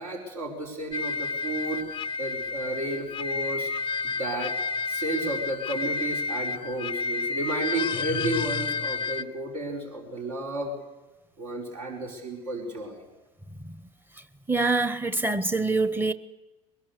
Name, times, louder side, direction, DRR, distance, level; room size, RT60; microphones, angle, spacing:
voice 1, 0.0-3.7 4.0-4.6 4.9-10.7 11.4-13.0, right 2 dB, 65° right, 5.1 m, -32 dB
sound 1, 0.9-9.2, left 4 dB, 25° left, 0.6 m, -30 dB
voice 2, 14.5-16.1, right 3 dB, 10° right, 1.1 m, -25 dB
22.0 x 21.5 x 6.8 m
figure-of-eight pair, 75°, 19 cm